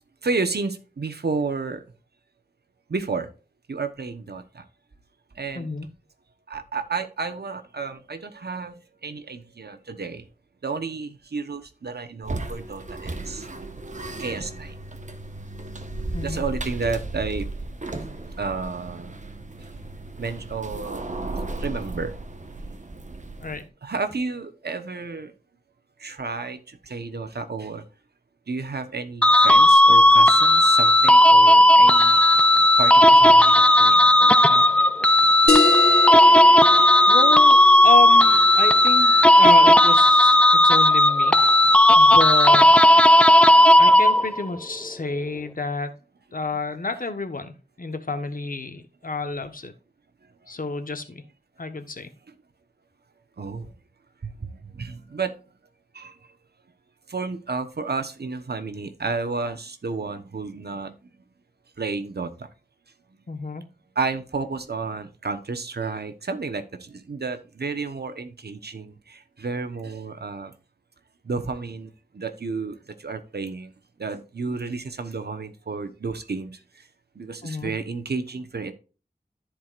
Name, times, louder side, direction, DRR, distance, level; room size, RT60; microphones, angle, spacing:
voice 1, 0.2-1.8 2.9-3.3 3.7-4.6 5.3-5.7 6.5-10.2 10.6-13.5 14.2-14.7 16.2-17.5 18.4-19.2 20.2-21.0 21.6-22.2 23.8-25.3 26.0-27.8 28.5-32.2 32.8-34.7 39.0-39.4 52.3-52.4 53.4-53.7 54.2-55.4 55.9-56.4 57.1-60.9 61.8-62.5 63.9-70.5 71.2-76.9 77.1-78.7, right 4 dB, 80° right, 8 dB, 1.1 m, -31 dB
voice 2, 5.5-5.9 16.1-16.4 23.4-23.7 37.1-41.4 41.9-42.7 43.8-46.0 46.3-49.7 50.5-51.2 51.6-52.1 63.3-63.6 77.4-77.7, left 3 dB, 60° left, 7 dB, 1.2 m, -29 dB
sound 1, 12.2-23.7, right 2 dB, 50° right, 1.2 m, -35 dB
sound 2, 29.2-44.4, left 1 dB, 5° left, 0.5 m, -14 dB
sound 3, 35.5-40.6, left 3 dB, 75° left, 1.4 m, -27 dB
14.0 x 4.8 x 2.5 m, 0.34 s
wide cardioid pair, 55°, 16 cm